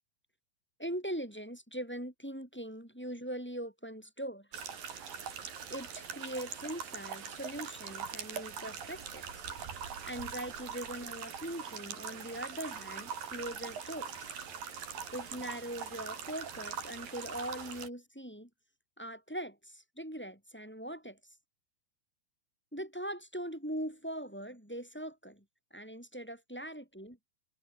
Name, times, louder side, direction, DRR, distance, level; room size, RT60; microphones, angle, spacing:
voice 1, 0.8-4.5 5.7-9.2 10.0-14.3 15.1-18.5 19.0-21.2 22.7-25.4 25.7-27.2, right 1 dB, 5° left, 5.0 m, -41 dB
sound 1, 4.5-17.9, right 7 dB, 70° right, 5.2 m, -42 dB
omnidirectional pair, 4.2 m